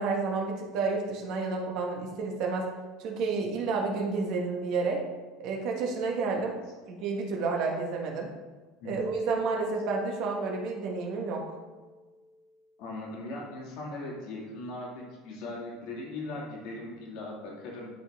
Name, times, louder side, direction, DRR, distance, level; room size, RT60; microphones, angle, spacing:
voice 1, 0.0-2.7 3.0-5.0 5.4-6.6 6.9-8.3 8.8-11.6, right 4 dB, 50° right, 0 dB, 1.2 m, -30 dB
Keyboard (musical), 9.0-12.2, equal, 5° right, 0.6 m, -39 dB
voice 2, 12.8-17.9, left 2 dB, 55° left, -2 dB, 2.0 m, -39 dB
11.0 x 3.9 x 3.5 m, 1.3 s
cardioid pair, 160°, 0 cm